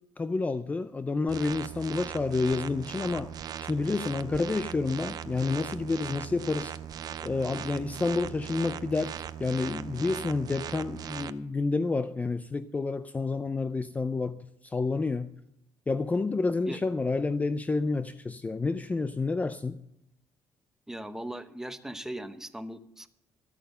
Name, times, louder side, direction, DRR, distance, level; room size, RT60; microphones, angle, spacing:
voice 1, 0.2-3.3 3.6-6.8 7.2-14.4 14.6-15.3 15.9-19.8, left 3 dB, 20° left, 0.5 m, -29 dB
sound 1, 1.3-11.3, right 9 dB, 55° right, 0.6 m, -39 dB
voice 2, 20.9-23.1, right 1 dB, 5° right, 0.9 m, -39 dB
14.0 x 8.5 x 6.7 m
cardioid pair, 110°, 8 cm